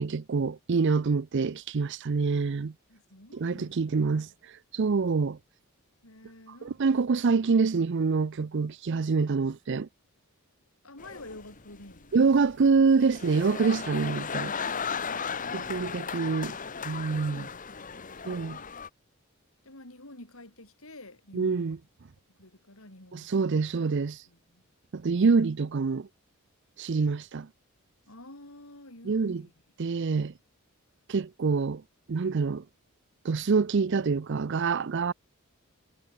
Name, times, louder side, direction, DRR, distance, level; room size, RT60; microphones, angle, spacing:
voice 1, 0.0-2.7 3.3-4.3 4.7-5.4 6.8-9.9 12.1-14.5 15.5-16.6 16.8-17.4 18.3-18.6 21.3-21.8 23.1-24.2 24.9-26.1 26.8-27.5 29.1-29.4 29.8-30.3 31.1-31.8 32.1-32.6 33.2-35.1, right 4 dB, 55° right, 0.5 m, -26 dB
voice 2, 2.9-4.3 6.0-7.1 10.8-12.3 15.1-15.9 17.2-18.6 19.6-21.8 22.4-23.8 24.3-24.6 28.1-29.5, left 1 dB, 70° left, 6.2 m, -50 dB
sound 1, 11.0-18.9, left 6 dB, 35° left, 1.3 m, -36 dB
head